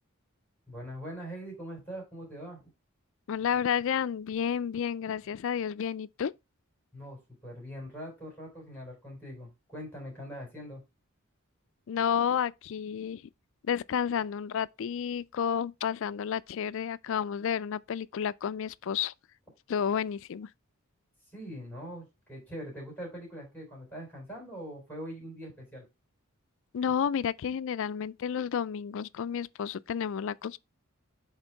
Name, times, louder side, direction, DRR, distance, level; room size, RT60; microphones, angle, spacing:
voice 1, 0.7-2.6 6.9-10.8 21.3-25.9, equal, 10° left, 3.6 m, -42 dB
voice 2, 3.3-6.3 11.9-13.2 13.6-19.1 19.7-20.5 26.7-30.6, left 8 dB, 65° left, 0.4 m, -31 dB
8.2 x 3.6 x 4.4 m
head